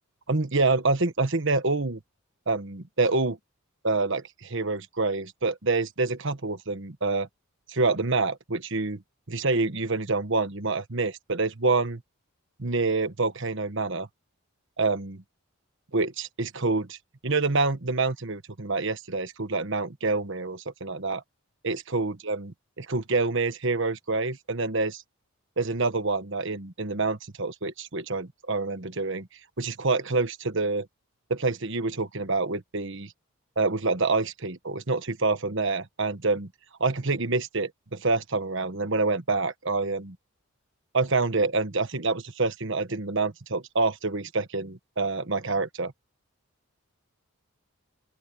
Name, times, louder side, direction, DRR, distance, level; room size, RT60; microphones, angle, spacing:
voice 1, 0.3-2.0 2.5-3.4 3.8-7.3 7.7-9.0 9.3-12.0 12.6-14.1 14.8-15.2 15.9-17.0 17.2-21.2 21.6-25.0 25.6-29.3 29.6-30.9 31.3-33.1 33.6-36.5 36.8-40.1 40.9-45.9, right 3 dB, 55° right, 1.4 m, -27 dB
open air
head